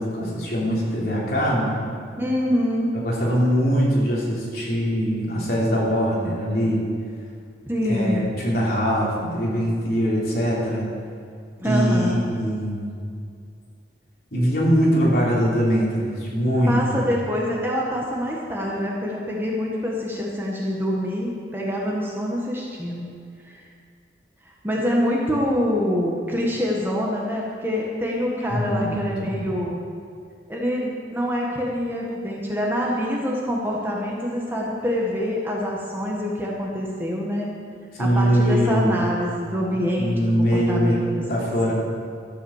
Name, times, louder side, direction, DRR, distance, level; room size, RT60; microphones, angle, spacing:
voice 1, 0.0-1.9 3.0-6.8 7.8-10.9 11.6-13.0 14.3-16.8 28.5-29.5 37.9-39.0 39.7-41.0 41.3-41.7, equal, 55° left, -5 dB, 3.4 m, -22 dB
voice 2, 2.2-3.0 7.7-8.3 11.6-12.2 16.7-23.1 23.4-23.6 24.6-29.8 30.5-37.5 38.0-41.5, equal, 10° right, -3 dB, 1.5 m, -25 dB
13.0 x 8.6 x 7.3 m, 2.3 s
head